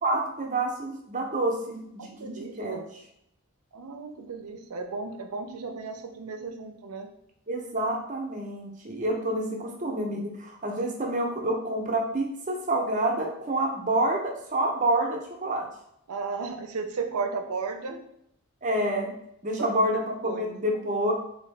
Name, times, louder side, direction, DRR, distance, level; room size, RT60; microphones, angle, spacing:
voice 1, 0.0-2.8 7.5-15.6 18.6-19.1 19.4-21.1, right 1 dB, 35° right, 1 dB, 0.6 m, -28 dB
voice 2, 2.0-2.9 3.7-7.1 8.9-9.0 16.1-18.0 19.6-19.7 20.2-20.5, right 4 dB, 90° right, 6 dB, 0.5 m, -34 dB
3.8 x 2.6 x 3.2 m, 0.76 s
head